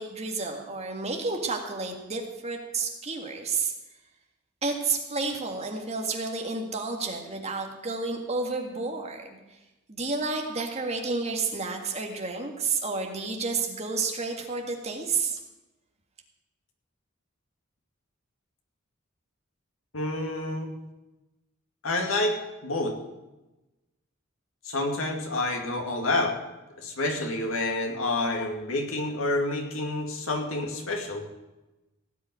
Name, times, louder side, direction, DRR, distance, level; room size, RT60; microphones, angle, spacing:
voice 1, 0.0-3.7 4.6-9.3 9.9-15.4, right 4 dB, 30° right, 2 dB, 1.9 m, -30 dB
voice 2, 19.9-20.7 21.8-22.4 22.6-23.0 24.6-26.4 26.8-31.3, left 2 dB, 85° left, 2 dB, 2.4 m, -28 dB
17.0 x 5.7 x 9.4 m, 1.0 s
head